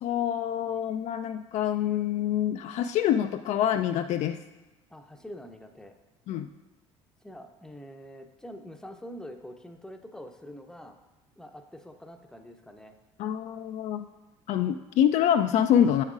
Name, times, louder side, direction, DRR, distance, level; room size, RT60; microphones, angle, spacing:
voice 1, 0.0-4.4 6.3-6.5 13.2-14.0 14.5-16.0, left 10 dB, 50° left, 8 dB, 0.4 m, -26 dB
voice 2, 4.9-6.0 7.2-11.0 11.4-12.9, equal, 5° left, 6 dB, 0.7 m, -45 dB
7.8 x 7.3 x 2.4 m, 1.1 s
hypercardioid pair, 60°, 15 cm